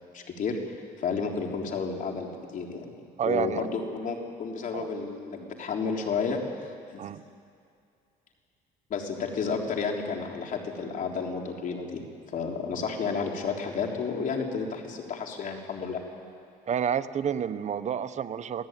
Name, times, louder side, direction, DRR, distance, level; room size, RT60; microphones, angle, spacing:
voice 1, 0.1-0.6 1.0-2.9 3.2-7.0 8.9-12.0 12.3-16.0, left 5 dB, 50° left, 1 dB, 3.7 m, -31 dB
voice 2, 3.2-3.7 4.7-4.9 7.0-7.2 16.7-18.7, right 8 dB, 45° right, 11 dB, 1.0 m, -29 dB
27.5 x 16.5 x 9.3 m, 2.4 s
cardioid pair, 110°, 17 cm